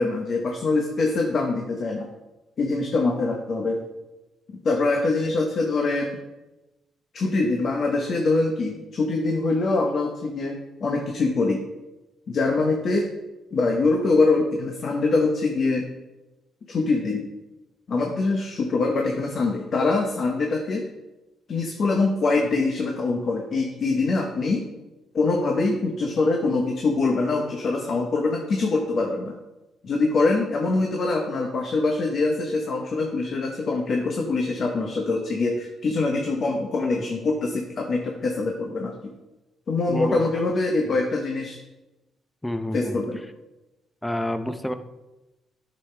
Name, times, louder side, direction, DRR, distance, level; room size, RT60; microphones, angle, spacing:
voice 1, 0.0-2.1 2.6-3.8 4.6-6.2 7.1-11.6 12.3-13.1 13.5-15.9 16.7-17.2 17.9-20.9 21.5-24.6 25.1-29.3 29.8-38.9 39.7-41.6 42.7-43.2, left 3 dB, 50° left, 1 dB, 1.0 m, -24 dB
voice 2, 39.9-40.2 40.8-40.9 42.4-43.0 44.0-44.7, equal, 10° left, 10 dB, 0.6 m, -28 dB
9.7 x 6.4 x 3.3 m, 1.0 s
cardioid pair, 90°, 0 cm